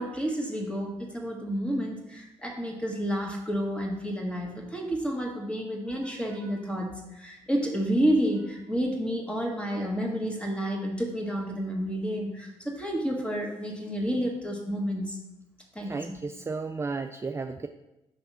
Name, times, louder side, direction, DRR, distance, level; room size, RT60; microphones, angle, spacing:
voice 1, 0.0-15.2 15.8-16.2, equal, 10° left, 0 dB, 1.8 m, -30 dB
voice 2, 15.8-17.7, right 4 dB, 20° right, 7 dB, 0.4 m, -33 dB
5.8 x 3.4 x 5.5 m, 0.95 s
hypercardioid pair, 50°, 13 cm